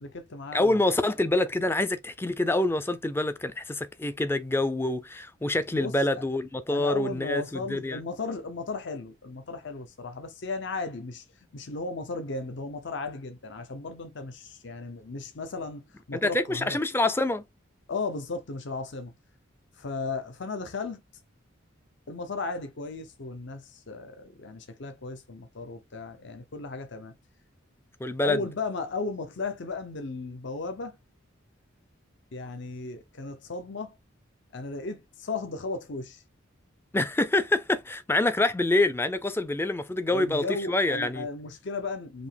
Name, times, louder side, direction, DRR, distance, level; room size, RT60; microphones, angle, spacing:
voice 1, 0.0-1.0 5.7-6.2 6.7-11.2 11.5-16.8 17.9-19.1 19.7-21.0 22.1-27.1 28.2-31.0 32.3-34.0 34.5-36.2 40.1-42.3, left 3 dB, 60° left, 0.7 m, -35 dB
voice 2, 0.5-8.0 16.1-17.4 28.0-28.4 36.9-41.3, left 2 dB, 10° left, 0.4 m, -26 dB
5.2 x 2.8 x 3.3 m
head